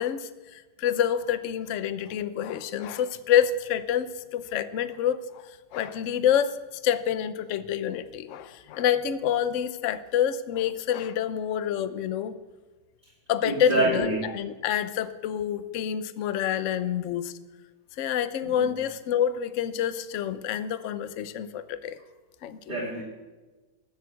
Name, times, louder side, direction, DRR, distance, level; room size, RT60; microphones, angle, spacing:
voice 1, 0.0-6.6 6.8-12.3 13.3-17.3 18.0-22.0 22.4-22.6, left 9 dB, 60° left, 13 dB, 0.8 m, -27 dB
voice 2, 13.4-14.2 18.4-18.7 22.7-23.0, right 1 dB, 25° right, -4 dB, 2.3 m, -26 dB
19.0 x 7.4 x 7.8 m, 1.2 s
omnidirectional pair, 2.0 m